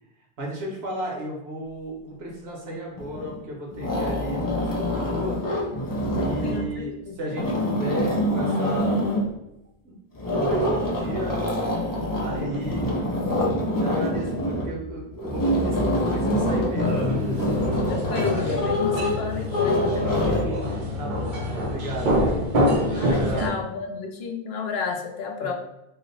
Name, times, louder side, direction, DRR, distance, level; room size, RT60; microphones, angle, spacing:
voice 1, 0.4-5.4 6.2-9.0 9.8-9.9 10.3-11.4 12.2-12.9 13.8-17.0 21.0-22.4 23.0-23.5 25.4-25.5, right 1 dB, 90° right, -2 dB, 1.2 m, -33 dB
sound 1, 3.0-3.4 3.7-6.7 7.2-9.3 10.2-20.5, left 1 dB, 35° left, 0.3 m, -25 dB
voice 2, 6.2-7.2 17.9-20.4 22.8-25.5, left 5 dB, 75° left, 3 dB, 0.8 m, -31 dB
sound 2, 16.8-23.5, equal, 55° right, 0.7 m, -26 dB
2.8 x 2.1 x 3.9 m, 0.86 s
omnidirectional pair, 1.0 m